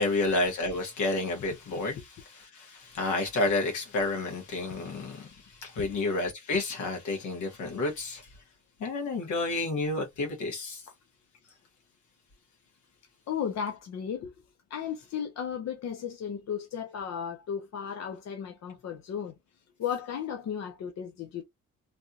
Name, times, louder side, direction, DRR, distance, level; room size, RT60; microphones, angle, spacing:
voice 1, 0.0-8.2 8.8-10.8, left 2 dB, 80° left, 1.6 m, -30 dB
voice 2, 13.3-14.3 14.7-19.3 19.8-21.4, left 8 dB, 60° left, 0.7 m, -35 dB
3.3 x 2.8 x 2.4 m
cardioid pair, 90°, 30 cm